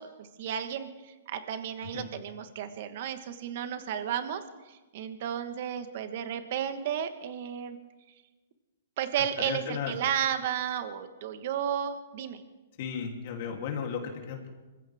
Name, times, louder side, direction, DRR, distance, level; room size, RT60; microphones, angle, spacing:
voice 1, 0.0-7.8 9.0-12.4, right 9 dB, 55° right, 9 dB, 1.3 m, -33 dB
voice 2, 9.4-9.9 12.8-14.5, left 7 dB, 50° left, 1 dB, 3.0 m, -35 dB
25.5 x 15.0 x 3.6 m, 1.2 s
hypercardioid pair, 145°, 0 cm